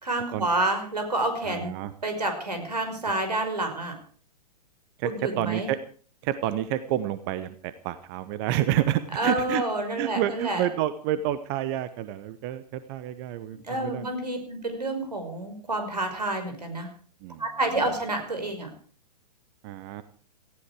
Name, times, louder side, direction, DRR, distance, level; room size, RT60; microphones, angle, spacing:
voice 1, 0.0-1.8 2.0-3.9 5.0-5.7 9.2-10.6 13.6-16.9 17.4-18.7, right 2 dB, 80° right, 6 dB, 5.4 m, -29 dB
voice 2, 1.4-1.9 5.0-5.1 5.4-5.8 6.2-9.6 10.0-14.0 17.2-17.4 17.8-17.9 19.6-20.0, right 12 dB, 35° right, 14 dB, 1.0 m, -29 dB
18.0 x 15.0 x 4.9 m, 0.43 s
figure-of-eight pair, 110°, 21 cm